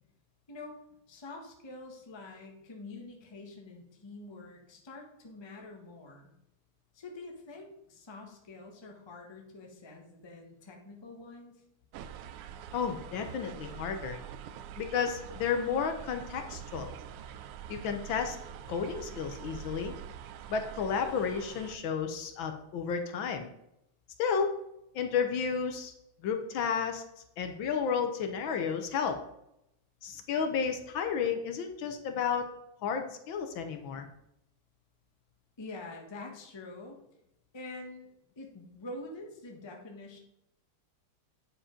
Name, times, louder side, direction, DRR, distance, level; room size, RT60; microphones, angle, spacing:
voice 1, 1.1-6.3 6.9-11.6 35.6-37.0 37.5-38.1 38.4-40.2, left 2 dB, 20° left, 1 dB, 0.8 m, -46 dB
sound 1, 11.9-21.8, right 9 dB, 85° right, 1.5 m, -45 dB
voice 2, 12.7-14.2 14.8-16.9 17.7-18.4 18.7-19.9 20.5-23.5 24.2-24.5 24.9-25.9 26.2-27.0 27.4-29.2 30.0-32.5 32.8-34.1, left 6 dB, 70° left, 6 dB, 1.4 m, -32 dB
8.8 x 4.8 x 5.1 m, 0.82 s
omnidirectional pair, 2.4 m